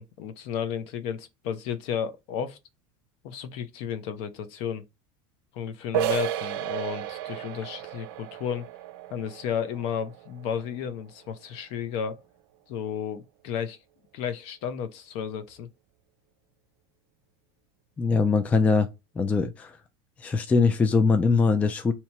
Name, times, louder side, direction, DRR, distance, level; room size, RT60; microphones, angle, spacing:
voice 1, 0.0-2.6 3.2-4.8 5.5-8.7 9.1-12.2 12.7-13.8 14.1-15.7, left 8 dB, 55° left, 0.7 m, -33 dB
sound 1, 5.9-11.4, right 13 dB, 70° right, 0.4 m, -33 dB
voice 2, 18.0-18.9 19.2-19.8 20.2-21.9, left 4 dB, 10° left, 0.3 m, -22 dB
2.9 x 2.8 x 4.5 m
supercardioid pair, 160°, 12 cm